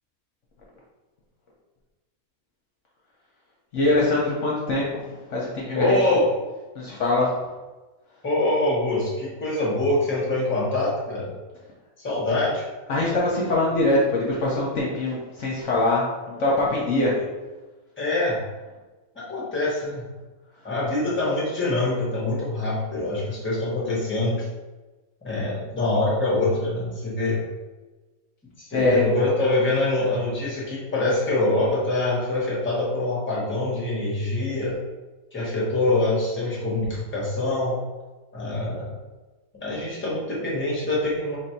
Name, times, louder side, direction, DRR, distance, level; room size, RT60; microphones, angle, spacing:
voice 1, 3.7-5.0 5.3-6.0 6.8-7.3 12.9-17.2 28.7-29.0, left 2 dB, 60° left, -4 dB, 1.0 m, -23 dB
voice 2, 5.7-6.3 8.2-11.3 12.0-12.6 18.0-18.4 19.1-20.0 20.6-24.5 25.2-27.4 28.6-34.8 35.3-37.8 38.3-38.9 39.6-41.4, left 2 dB, 10° left, -5 dB, 0.9 m, -24 dB
3.2 x 2.6 x 4.3 m, 1.2 s
omnidirectional pair, 1.5 m